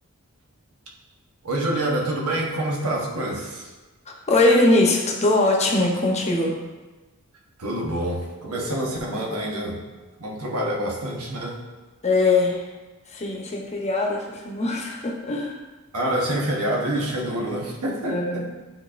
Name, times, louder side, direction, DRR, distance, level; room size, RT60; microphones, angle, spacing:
voice 1, 1.4-3.7 7.6-9.8 10.2-11.6 15.9-18.5, right 1 dB, 85° right, -1 dB, 1.1 m, -27 dB
voice 2, 4.3-6.6 12.0-12.7 13.1-15.6 18.1-18.5, left 2 dB, 30° left, -1 dB, 0.9 m, -21 dB
9.2 x 4.0 x 2.5 m, 1.2 s
head